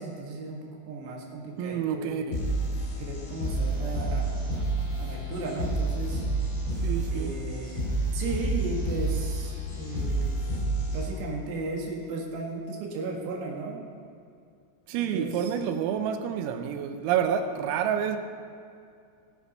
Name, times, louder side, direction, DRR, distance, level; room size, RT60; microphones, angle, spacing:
voice 1, 0.0-2.2 3.0-6.2 7.1-7.9 8.1-10.3 10.9-13.9 14.9-15.5, right 3 dB, 65° right, 3.5 m, -36 dB
voice 2, 1.6-2.4 6.8-7.4 10.0-10.1 14.9-18.2, right 8 dB, 90° right, 3.5 m, -28 dB
sound 1, 2.3-11.3, right 2 dB, 85° left, 6.9 m, -29 dB
19.5 x 8.0 x 5.4 m
omnidirectional pair, 5.9 m